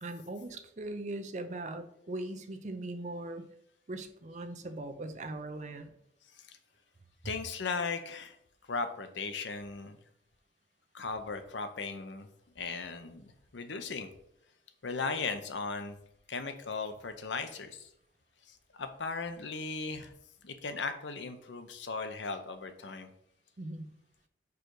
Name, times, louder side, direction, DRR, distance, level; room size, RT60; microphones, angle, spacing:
voice 1, 0.0-3.4 3.9-5.9 23.6-23.9, right 2 dB, 40° right, 8 dB, 0.6 m, -40 dB
voice 2, 7.2-8.4 8.7-10.0 10.9-12.3 12.6-14.1 14.8-16.0 16.3-17.9 18.5-20.1 20.4-23.1, left 4 dB, 85° left, 8 dB, 0.7 m, -37 dB
5.0 x 4.8 x 4.6 m, 0.76 s
head